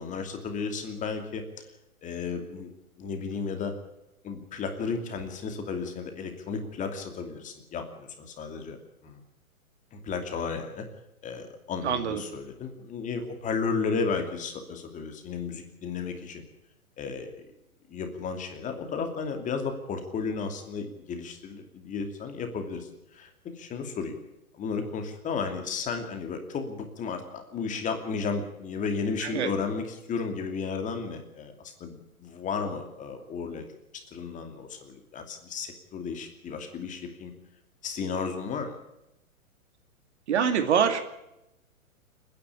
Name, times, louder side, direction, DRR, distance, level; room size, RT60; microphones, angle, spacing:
voice 1, 0.0-1.4 2.0-2.7 3.0-3.7 4.2-8.8 9.0-9.2 9.9-10.9 11.2-16.4 17.0-17.4 17.9-23.3 23.6-24.2 24.5-31.5 31.8-33.6 34.1-37.3 37.8-38.8, left 5 dB, 15° left, 5 dB, 2.7 m, -33 dB
voice 2, 11.8-12.2 29.3-29.5 40.3-41.0, right 7 dB, 50° right, 7 dB, 2.5 m, -24 dB
29.5 x 10.5 x 8.5 m, 0.88 s
figure-of-eight pair, 115°, 43 cm